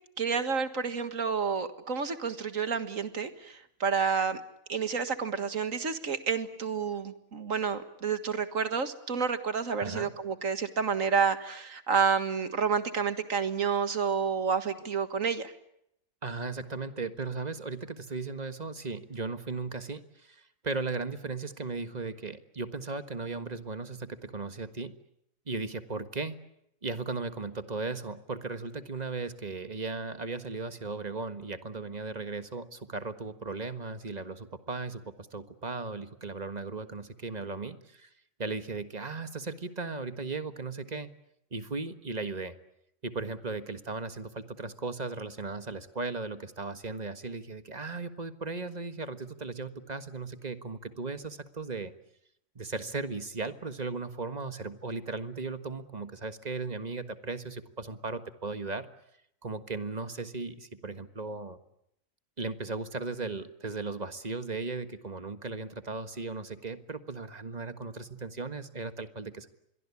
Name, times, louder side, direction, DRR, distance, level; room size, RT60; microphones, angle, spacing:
voice 1, 0.2-4.4 4.7-15.5, right 6 dB, 55° right, 10 dB, 2.0 m, -29 dB
voice 2, 9.8-10.1 16.2-24.9 25.5-26.4 26.8-38.1 38.4-41.1 41.5-42.5 43.0-51.9 52.5-58.9 59.4-61.6 62.4-69.5, right 3 dB, 25° right, 10 dB, 1.5 m, -36 dB
26.5 x 23.0 x 8.4 m, 0.76 s
omnidirectional pair, 1.7 m